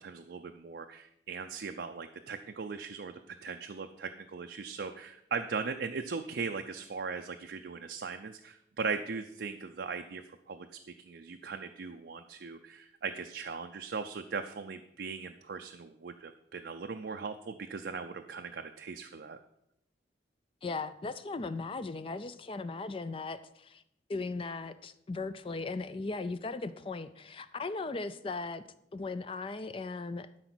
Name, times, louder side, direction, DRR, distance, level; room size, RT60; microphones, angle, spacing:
voice 1, 0.0-10.7 11.0-19.4, right 5 dB, 70° right, 5 dB, 0.5 m, -39 dB
voice 2, 20.6-23.8 24.1-28.6 28.9-30.5, left 3 dB, 30° left, 13 dB, 0.4 m, -38 dB
12.0 x 4.9 x 6.1 m, 0.78 s
head